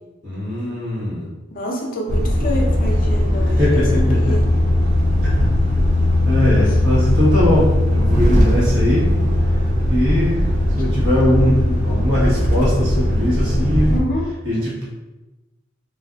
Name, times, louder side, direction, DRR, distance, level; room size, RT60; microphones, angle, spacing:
voice 1, 0.2-1.3 3.4-4.4 6.2-9.1 9.9-10.4 10.8-13.9 14.4-14.9, left 1 dB, 80° right, -9 dB, 1.2 m, -20 dB
voice 2, 1.5-4.4 13.9-14.3, equal, 50° left, 0 dB, 0.5 m, -27 dB
Truck, 2.1-14.0, left 1 dB, 40° right, 0.4 m, -18 dB
2.5 x 2.4 x 2.3 m, 1.1 s
head